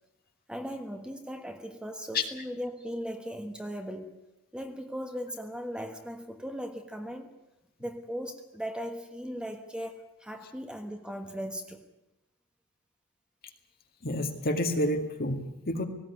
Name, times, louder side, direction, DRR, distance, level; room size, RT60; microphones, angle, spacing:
voice 1, 0.5-4.1 4.5-7.3 7.8-11.8, equal, 5° right, 5 dB, 1.4 m, -38 dB
voice 2, 14.0-15.8, left 1 dB, 45° left, 4 dB, 2.2 m, -29 dB
18.5 x 16.5 x 9.7 m, 0.92 s
head